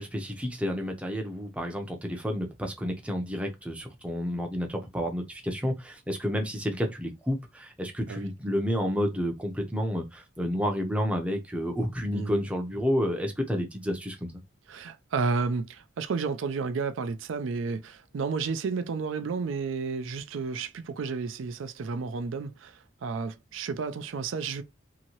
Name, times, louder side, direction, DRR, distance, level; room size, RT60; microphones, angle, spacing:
voice 1, 0.0-14.3, equal, 5° right, 0.5 m, -30 dB
voice 2, 14.7-24.6, right 4 dB, 75° right, 0.4 m, -32 dB
2.8 x 2.7 x 2.8 m
head